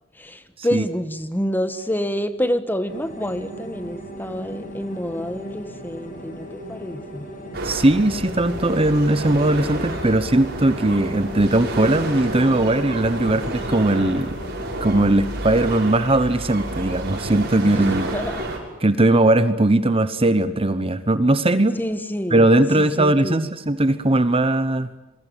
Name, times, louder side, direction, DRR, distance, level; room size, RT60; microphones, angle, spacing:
voice 1, 0.2-7.3 17.6-17.7 18.1-18.4 21.8-22.5 22.7-23.5, equal, 10° left, 10 dB, 1.6 m, -27 dB
sound 1, 2.9-15.0, equal, 45° left, 7.8 m, -37 dB
sound 2, 7.5-18.6, right 1 dB, 55° right, 6.9 m, -30 dB
voice 2, 7.6-14.3 14.8-18.1 18.8-21.8 22.3-24.9, right 1 dB, 30° right, 12 dB, 1.0 m, -19 dB
28.0 x 23.0 x 9.2 m, 0.97 s
head